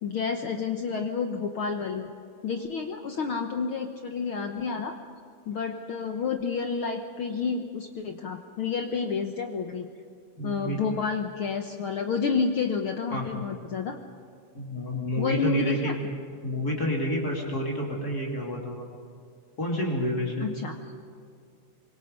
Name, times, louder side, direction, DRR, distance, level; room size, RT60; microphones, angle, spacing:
voice 1, 0.0-2.1 2.4-4.9 5.5-9.9 10.4-14.0 15.2-15.9 20.4-20.7, left 5 dB, 60° left, 5 dB, 1.4 m, -30 dB
voice 2, 10.4-10.8 13.1-13.4 14.5-15.9 16.4-18.8 19.6-20.5, equal, 30° left, -1 dB, 3.4 m, -29 dB
25.5 x 23.0 x 5.5 m, 2.3 s
omnidirectional pair, 3.5 m